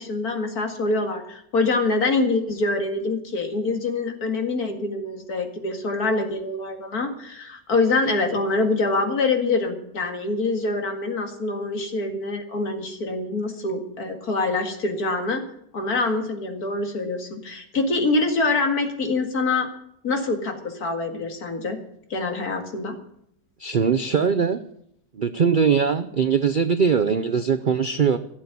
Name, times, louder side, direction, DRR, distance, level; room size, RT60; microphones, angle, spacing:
voice 1, 0.0-15.4 15.7-19.7 20.0-21.8 22.1-23.0, left 3 dB, 65° left, 5 dB, 2.5 m, -25 dB
voice 2, 23.6-24.6 25.1-28.2, right 6 dB, 80° right, 11 dB, 0.4 m, -21 dB
16.0 x 7.6 x 9.5 m, 0.72 s
omnidirectional pair, 1.8 m